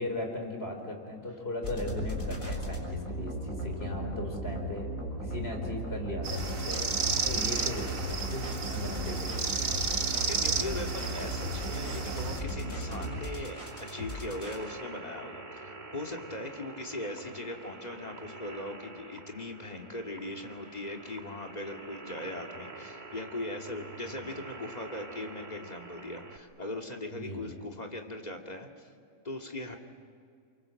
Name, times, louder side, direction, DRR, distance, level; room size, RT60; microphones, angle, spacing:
voice 1, 0.0-4.9 5.2-9.4 24.2-24.3 27.1-27.6, left 1 dB, 45° left, 3 dB, 4.7 m, -38 dB
sound 1, 1.6-14.6, equal, 85° left, 5.6 m, -36 dB
sound 2, 6.2-12.4, right 5 dB, 75° right, 1.9 m, -33 dB
sound 3, 6.4-26.4, right 2 dB, 35° right, 1.7 m, -46 dB
voice 2, 10.3-28.7 29.2-29.8, left 1 dB, 30° left, 2 dB, 2.5 m, -39 dB
29.0 x 24.0 x 7.7 m, 2.2 s
omnidirectional pair, 1.4 m